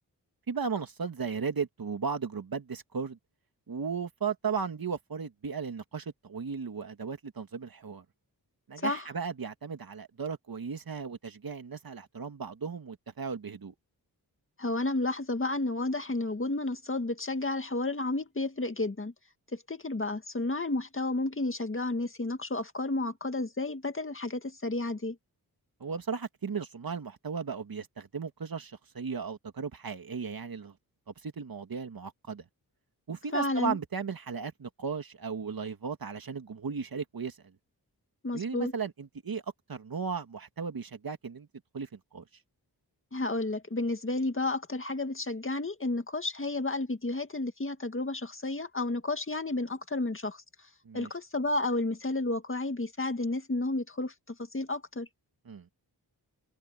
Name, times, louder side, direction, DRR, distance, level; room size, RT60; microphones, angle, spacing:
voice 1, 0.5-3.2 3.7-8.0 8.7-13.7 25.8-30.7 31.2-32.4 33.1-37.4 38.3-39.4 39.7-41.5 41.7-42.2 50.8-51.1 55.5-55.7, right 5 dB, 60° right, 2.2 m, -36 dB
voice 2, 8.8-9.1 14.6-19.1 19.5-25.2 33.3-33.8 38.2-38.7 43.1-50.4 50.9-55.1, left 2 dB, 30° left, 2.1 m, -31 dB
wide cardioid pair, 85°, 39 cm